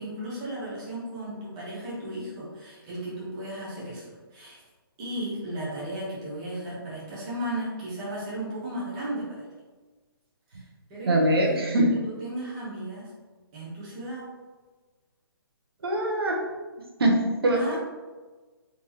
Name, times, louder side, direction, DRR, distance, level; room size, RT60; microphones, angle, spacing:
voice 1, 0.0-4.6 5.0-9.4 10.5-10.6 10.9-11.3 11.6-13.1 13.5-14.3 17.5-17.8, right 1 dB, 15° right, -8 dB, 0.6 m, -35 dB
voice 2, 11.1-11.9 15.8-16.4 17.0-17.8, right 1 dB, 75° right, 0 dB, 0.8 m, -23 dB
3.7 x 2.7 x 2.9 m, 1.3 s
hypercardioid pair, 175°, 13 cm